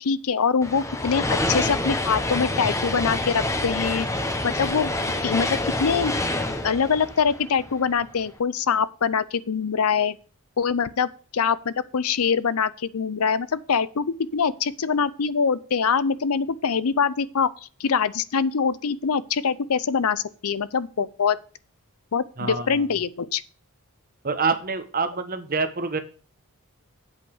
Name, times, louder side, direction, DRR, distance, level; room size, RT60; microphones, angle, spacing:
voice 1, 0.0-4.1 4.4-4.9 5.2-6.1 6.6-10.2 10.6-14.1 14.3-17.5 17.8-21.4 22.1-23.4, left 6 dB, 75° left, 0.6 m, -24 dB
sound 1, 0.6-8.0, left 2 dB, 15° left, 1.0 m, -27 dB
voice 2, 22.4-22.8 24.2-26.0, right 4 dB, 40° right, 1.2 m, -26 dB
8.2 x 5.4 x 6.5 m
head